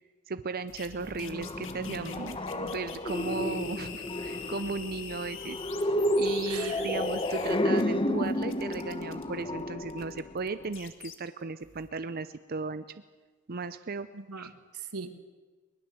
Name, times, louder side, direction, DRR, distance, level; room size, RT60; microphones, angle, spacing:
voice 1, 0.3-5.6 6.1-12.8 13.5-14.1 14.4-14.5, right 4 dB, 45° right, 12 dB, 0.6 m, -36 dB
sound 1, 0.7-7.8 8.2-11.1 11.6-11.9, left 8 dB, 60° left, 1.9 m, -44 dB
sound 2, 1.0-10.7, left 1 dB, 25° left, 1.0 m, -31 dB
voice 2, 6.5-6.9 14.1-15.2, right 5 dB, 90° right, 8 dB, 1.9 m, -41 dB
22.5 x 20.5 x 7.8 m, 1.4 s
head